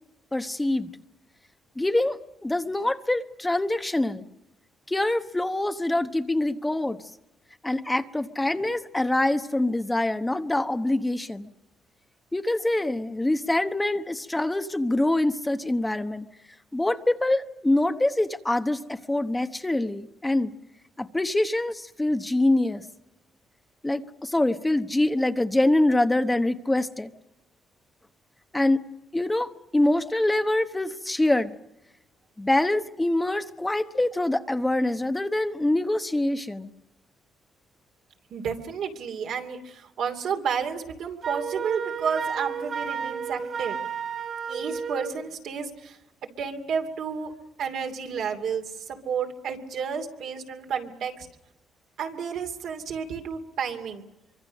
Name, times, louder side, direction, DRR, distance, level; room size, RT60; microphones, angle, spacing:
voice 1, 0.3-0.9 1.8-4.2 4.9-7.0 7.6-11.5 12.3-16.3 16.7-20.5 21.0-22.8 23.8-27.1 28.5-28.8 29.1-31.6 32.4-36.7, left 1 dB, 15° left, 8 dB, 1.0 m, -25 dB
voice 2, 38.3-43.8 44.5-46.0 46.4-47.3 47.6-51.3 52.0-54.0, right 6 dB, 75° right, 4 dB, 2.8 m, -31 dB
Wind instrument woodwind instrument, 41.2-45.2, right 6 dB, 55° right, 2.8 m, -32 dB
25.0 x 24.5 x 6.4 m, 0.93 s
cardioid pair, 90°, 0 cm